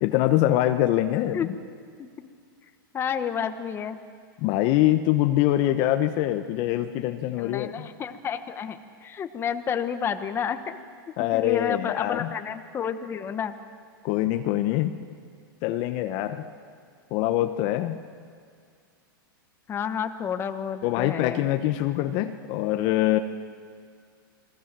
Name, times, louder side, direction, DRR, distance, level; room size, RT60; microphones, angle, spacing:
voice 1, 0.0-1.6 4.4-7.9 11.2-12.3 14.0-15.0 15.6-16.5 17.1-18.0 20.8-23.2, left 14 dB, 40° left, 9 dB, 1.1 m, -24 dB
voice 2, 2.9-4.0 7.4-10.8 11.2-13.6 19.7-21.5, left 7 dB, 20° left, 8 dB, 1.3 m, -30 dB
29.5 x 21.5 x 7.6 m, 2.1 s
hypercardioid pair, 140°, 12 cm